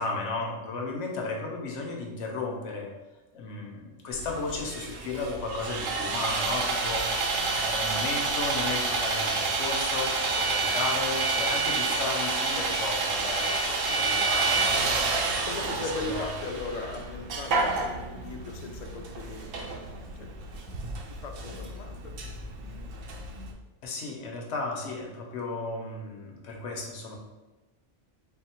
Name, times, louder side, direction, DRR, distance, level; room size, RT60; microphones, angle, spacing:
voice 1, 0.0-2.9 3.3-13.5 14.0-15.5 16.1-16.3 23.8-27.1, left 3 dB, 80° left, 0 dB, 1.1 m, -34 dB
Sawing, 4.1-23.5, right 3 dB, 60° right, 0.8 m, -29 dB
voice 2, 4.9-5.2 12.6-12.7 13.6-14.2 15.5-19.7 20.2-20.3 21.1-22.7, left 3 dB, 65° left, 3 dB, 0.4 m, -39 dB
4.1 x 2.1 x 4.2 m, 1.1 s
omnidirectional pair, 1.2 m